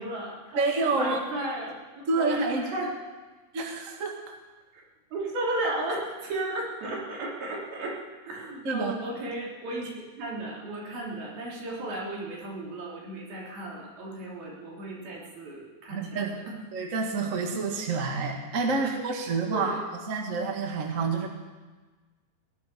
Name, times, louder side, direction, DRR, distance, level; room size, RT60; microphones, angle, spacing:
voice 1, 0.0-0.6 1.0-2.9 4.7-4.8 5.1-9.9 10.2-16.6 18.7-18.9 19.5-19.8, right 1 dB, 85° right, -4 dB, 5.3 m, -35 dB
voice 2, 0.5-1.2 2.1-2.6 3.5-4.3 8.6-8.9 15.9-16.3 16.7-21.3, right 4 dB, 35° right, 2 dB, 1.4 m, -28 dB
18.0 x 11.0 x 6.8 m, 1.3 s
omnidirectional pair, 4.2 m